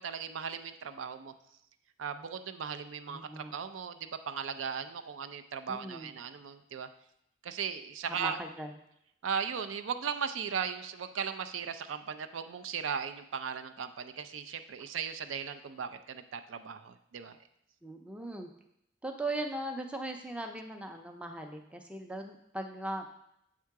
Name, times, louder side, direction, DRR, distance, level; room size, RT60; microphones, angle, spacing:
voice 1, 0.0-1.3 2.0-6.9 7.4-8.4 9.2-17.4, right 7 dB, 85° right, 8 dB, 0.4 m, -37 dB
voice 2, 3.1-3.5 5.7-6.1 8.1-8.7 17.8-18.5 19.0-23.1, right 1 dB, 5° right, 4 dB, 0.4 m, -39 dB
7.4 x 3.7 x 4.6 m, 0.78 s
head